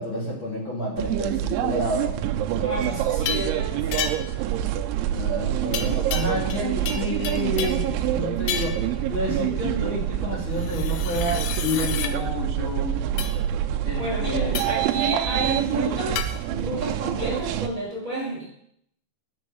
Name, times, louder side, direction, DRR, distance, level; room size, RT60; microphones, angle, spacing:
voice 1, 0.0-2.3 2.5-2.9 5.1-13.0 13.8-14.6, left 2 dB, 45° left, -4 dB, 1.7 m, -30 dB
sound 1, 1.0-17.7, right 11 dB, 80° right, 2.9 m, -26 dB
voice 2, 2.6-4.6 14.0-18.4, right 1 dB, 30° right, -4 dB, 2.5 m, -31 dB
sound 2, 3.3-3.5 3.9-4.4 5.7-6.6 6.9-7.9 8.5-8.9 10.6-12.1 13.2-13.4 14.5-14.9 16.2-16.3, left 8 dB, 75° left, 2.4 m, -31 dB
10.5 x 7.5 x 6.3 m, 0.72 s
omnidirectional pair, 5.6 m